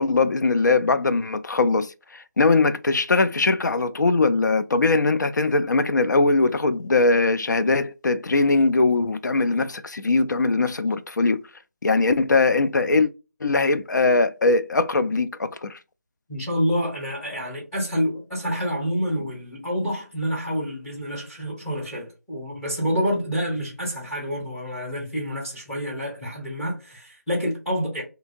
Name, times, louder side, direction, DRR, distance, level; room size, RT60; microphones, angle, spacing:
voice 1, 0.0-11.4 11.8-13.1 13.4-15.8, left 3 dB, 85° left, 0.4 m, -21 dB
voice 2, 16.3-28.0, equal, 5° left, 0.7 m, -28 dB
2.7 x 2.7 x 2.5 m
figure-of-eight pair, 170°, 10 cm